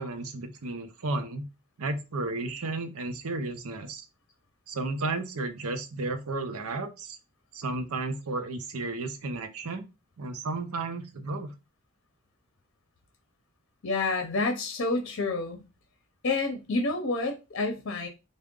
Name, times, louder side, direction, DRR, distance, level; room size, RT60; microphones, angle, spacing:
voice 1, 0.0-1.5 1.8-4.1 4.7-7.2 7.5-9.8 10.2-11.5, right 2 dB, 85° right, 0.7 m, -33 dB
voice 2, 13.8-15.6 16.2-18.1, left 3 dB, 55° left, 0.6 m, -29 dB
3.6 x 2.2 x 3.6 m
head